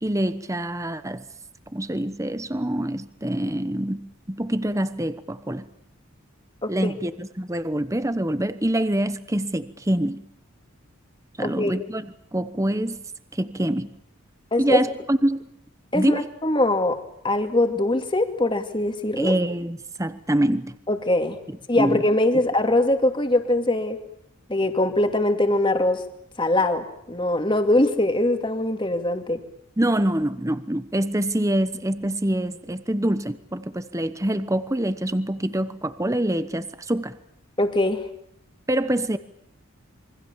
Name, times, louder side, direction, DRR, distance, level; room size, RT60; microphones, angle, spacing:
voice 1, 0.0-1.2 1.7-5.7 6.7-10.2 11.4-13.0 13.3-13.9 14.6-15.5 15.9-16.3 19.2-20.8 21.5-22.0 29.8-37.2 38.7-39.2, right 1 dB, 15° right, 12 dB, 1.0 m, -25 dB
voice 2, 6.6-6.9 11.4-11.7 14.5-14.9 15.9-17.0 17.2-19.3 20.9-21.4 21.7-24.0 24.5-26.0 26.4-29.4 37.6-38.1, left 1 dB, 20° left, 6 dB, 2.5 m, -22 dB
27.5 x 24.5 x 7.3 m, 0.72 s
head